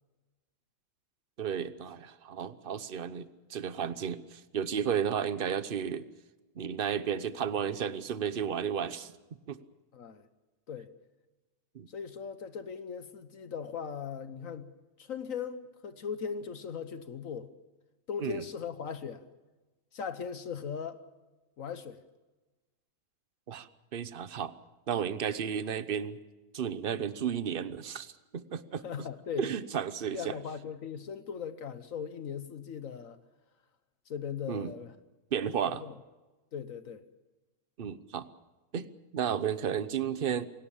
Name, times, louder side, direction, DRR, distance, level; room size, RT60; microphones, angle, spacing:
voice 1, 1.4-6.1 6.6-9.1 9.5-9.6 11.7-11.9 18.2-18.4 23.5-24.5 24.9-26.2 26.5-28.8 29.4-30.3 34.5-34.7 35.3-35.8 37.8-38.3 38.7-38.9 39.1-40.5, right 8 dB, 45° right, 1.0 m, -33 dB
voice 2, 9.9-10.3 10.7-10.9 11.9-14.7 15.0-17.5 18.1-19.2 19.9-21.0 21.6-22.0 28.8-29.5 30.1-33.2 34.1-35.0 35.7-36.0 36.5-37.1, left 7 dB, 70° left, 1.4 m, -39 dB
27.5 x 17.5 x 7.2 m
omnidirectional pair, 1.5 m